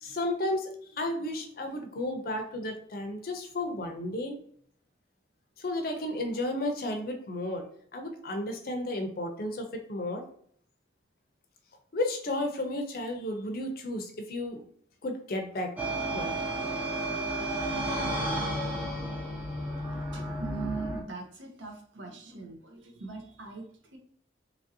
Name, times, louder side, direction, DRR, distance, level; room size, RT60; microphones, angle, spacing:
voice 1, 0.0-4.3 5.6-7.7 7.9-10.2 11.9-14.6 15.0-15.7 16.1-16.4, left 1 dB, 50° left, 4 dB, 0.5 m, -33 dB
sound 1, 15.8-21.0, right 1 dB, 10° right, 0.4 m, -32 dB
voice 2, 20.1-24.0, right 4 dB, 80° right, 2 dB, 0.7 m, -41 dB
2.9 x 2.5 x 2.7 m, 0.62 s
head